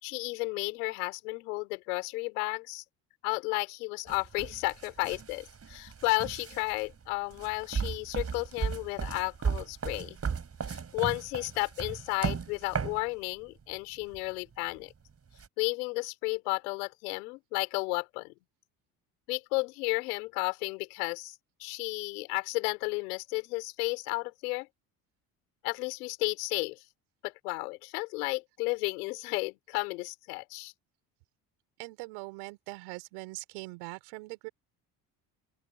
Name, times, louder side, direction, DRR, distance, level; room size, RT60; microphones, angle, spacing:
voice 1, 0.0-2.8 3.2-10.2 10.7-14.9 15.6-18.3 19.3-21.3 21.6-24.7 25.6-26.8 27.2-30.7, left 26 dB, 90° left, 6.8 m, -33 dB
sound 1, 4.1-13.0 14.0-14.2 15.4-15.5, right 6 dB, 35° right, 5.7 m, -36 dB
voice 2, 31.8-34.5, right 28 dB, 80° right, 5.6 m, -42 dB
open air
supercardioid pair, 80°, 44 cm